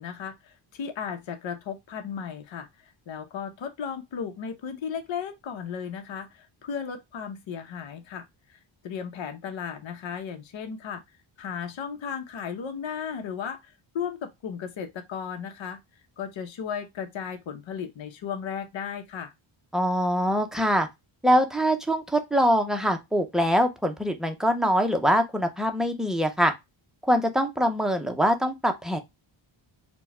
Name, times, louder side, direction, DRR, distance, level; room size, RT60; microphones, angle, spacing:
voice 1, 0.0-8.6 8.8-11.0 11.4-15.8 16.2-19.3, left 7 dB, 65° left, 0.9 m, -35 dB
voice 2, 19.7-20.9 21.2-26.5 27.0-29.0, equal, ahead, 0.5 m, -23 dB
4.4 x 2.2 x 4.2 m
wide cardioid pair, 145°, 48 cm